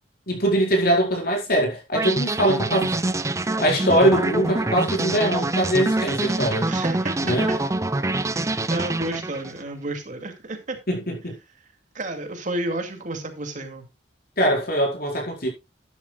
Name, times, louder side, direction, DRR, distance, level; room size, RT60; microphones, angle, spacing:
voice 1, 0.3-3.0 3.6-6.7 7.2-7.5 10.9-11.3 14.4-15.5, right 1 dB, 55° left, 4.5 m, -22 dB
sound 1, 1.9-9.6, right 2 dB, 15° right, 0.6 m, -25 dB
voice 2, 6.7-7.3 8.2-10.8 11.9-13.9, right 2 dB, 45° right, 2.4 m, -31 dB
12.5 x 12.0 x 2.3 m
head